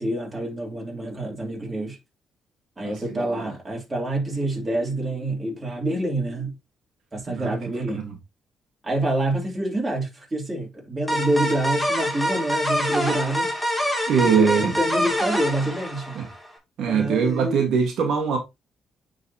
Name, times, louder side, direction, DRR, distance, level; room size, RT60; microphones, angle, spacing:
voice 1, 0.0-2.0 2.8-6.5 7.1-8.1 8.8-13.7 14.2-16.2 16.9-17.7, right 1 dB, 25° right, 2.8 m, -27 dB
voice 2, 2.8-3.4 7.3-7.6 7.9-8.1 14.1-14.7 16.1-16.3 16.8-18.4, right 6 dB, 75° right, 1.5 m, -22 dB
sound 1, 11.1-16.5, equal, 5° left, 2.4 m, -25 dB
9.4 x 4.0 x 2.8 m
cardioid pair, 90°, 0 cm